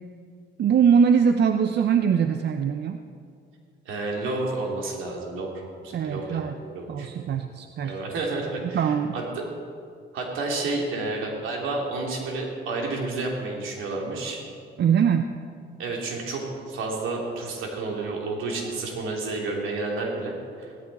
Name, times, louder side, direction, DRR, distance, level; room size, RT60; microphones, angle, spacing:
voice 1, 0.6-3.0 5.9-6.6 6.9-8.0 8.7-9.2 14.8-15.3, right 7 dB, 60° right, 7 dB, 0.7 m, -22 dB
voice 2, 3.8-5.5 5.8-6.4 6.7-7.1 7.8-9.4 10.1-14.4 15.8-20.7, right 3 dB, 85° right, -1 dB, 3.1 m, -30 dB
17.0 x 14.0 x 4.2 m, 2.3 s
cardioid pair, 90°, 20 cm